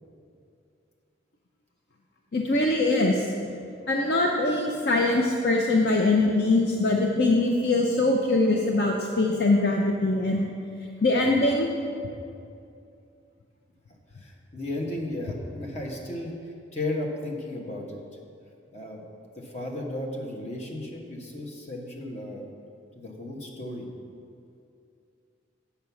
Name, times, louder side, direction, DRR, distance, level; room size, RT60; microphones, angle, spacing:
voice 1, 2.3-3.3 3.9-10.4 11.0-11.7, left 2 dB, 55° left, 0 dB, 0.6 m, -22 dB
voice 2, 14.2-18.0 18.7-19.1 19.4-22.4 22.9-23.9, left 1 dB, 35° left, -1 dB, 1.2 m, -34 dB
7.6 x 5.8 x 7.0 m, 2.5 s
head